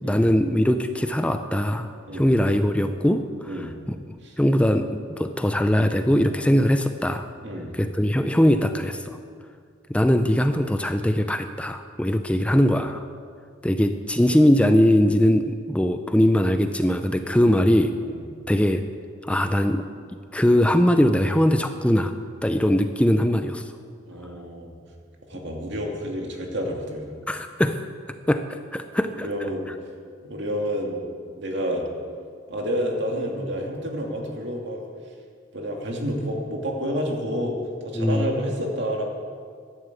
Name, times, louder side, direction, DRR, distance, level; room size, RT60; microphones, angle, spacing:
voice 1, 0.0-3.7 4.4-4.9 5.2-7.3 7.7-9.2 9.9-13.0 13.6-17.9 18.5-18.8 19.3-19.8 20.3-22.1 22.4-23.6 27.3-27.8 28.3-29.5 38.0-38.3, equal, 5° left, 8 dB, 0.5 m, -21 dB
voice 2, 7.4-7.7 17.4-17.5 18.1-18.3 24.1-24.7 25.3-27.1 29.2-29.7 30.2-31.0 31.4-31.8 32.5-34.8 35.5-37.6 37.8-39.1, equal, 65° right, 1 dB, 2.5 m, -29 dB
12.5 x 11.0 x 8.1 m, 2.1 s
head